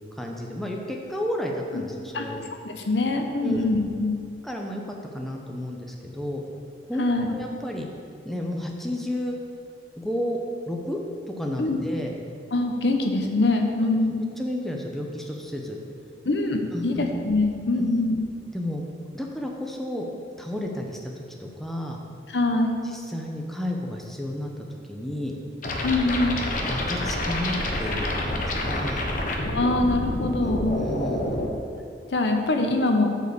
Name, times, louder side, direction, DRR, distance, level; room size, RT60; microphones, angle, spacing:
voice 1, 0.2-2.4 3.4-3.6 4.4-6.4 6.8-7.9 8.2-9.4 10.0-10.4 10.7-11.0 11.3-12.1 14.4-15.8 16.7-17.0 17.8-17.9 18.5-18.8 19.1-20.1 20.4-22.0 22.8-25.3 26.7-29.0 30.8-31.4, left 1 dB, ahead, 0 dB, 0.7 m, -32 dB
voice 2, 2.6-4.1 7.0-7.3 11.6-11.8 12.5-14.2 16.2-18.2 22.3-22.8 25.8-26.4 29.5-30.8 32.1-33.1, left 2 dB, 75° left, 4 dB, 0.8 m, -23 dB
sound 1, 25.6-31.5, left 1 dB, 50° left, 1.0 m, -28 dB
8.0 x 4.8 x 6.7 m, 2.3 s
head